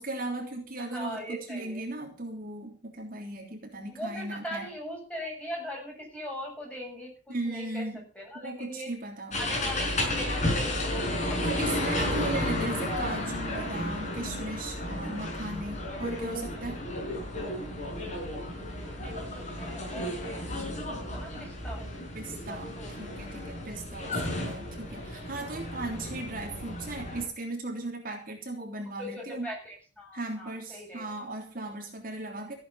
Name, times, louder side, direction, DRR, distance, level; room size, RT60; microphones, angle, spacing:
voice 1, 0.0-4.7 7.3-8.0 8.3-9.4 11.4-16.8 22.1-29.5 30.1-32.5, right 2 dB, 45° right, 1 dB, 3.3 m, -37 dB
voice 2, 0.8-1.8 3.9-7.9 8.1-8.9 9.3-12.3 12.7-12.8 18.8-20.8 21.1-21.8 22.3-22.9 23.3-23.4 29.0-31.0, equal, 5° left, -2 dB, 7.8 m, -41 dB
sound 1, 9.3-27.2, left 1 dB, 40° left, 5.2 m, -33 dB
15.5 x 8.6 x 7.2 m, 0.40 s
head